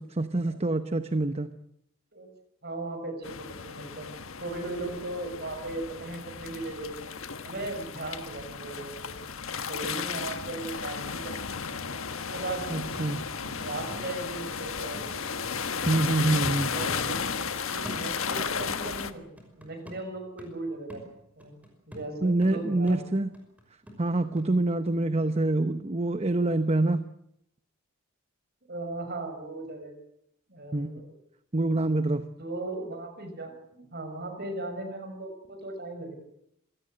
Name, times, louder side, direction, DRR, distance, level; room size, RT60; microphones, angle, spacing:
voice 1, 0.0-1.5 12.7-13.2 15.9-16.7 22.2-23.3 24.0-27.0 30.7-30.9 31.5-32.2, right 2 dB, 30° right, 10 dB, 0.9 m, -26 dB
voice 2, 2.6-4.1 4.4-7.1 7.4-9.1 9.7-11.4 12.3-12.7 13.5-15.2 16.7-19.3 19.6-21.0 21.4-21.5 21.9-23.0 28.7-29.9 30.5-31.2 32.4-36.1, right 2 dB, 50° right, 7 dB, 6.3 m, -37 dB
sound 1, 3.2-19.1, left 6 dB, 70° left, 1.5 m, -34 dB
sound 2, 11.9-14.6 14.9-16.6 16.9-18.5 18.8-24.5 24.8-24.9, equal, 5° right, 5.8 m, -46 dB
26.0 x 18.0 x 8.0 m, 0.74 s
head